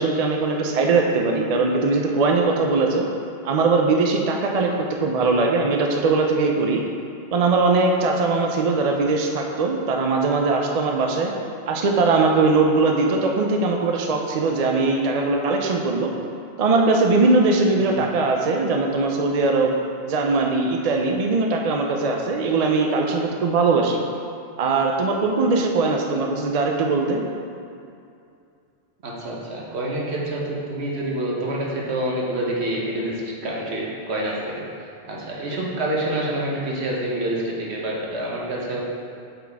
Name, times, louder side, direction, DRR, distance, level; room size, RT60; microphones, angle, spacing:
voice 1, 0.0-3.1 3.4-6.8 7.3-11.3 11.7-16.1 16.6-19.7 20.0-24.0 24.6-27.2, right 3 dB, 50° right, 1 dB, 0.5 m, -20 dB
voice 2, 29.0-34.4 34.8-38.8, right 1 dB, 70° right, -4 dB, 1.3 m, -27 dB
7.7 x 4.1 x 3.5 m, 2.5 s
omnidirectional pair, 1.1 m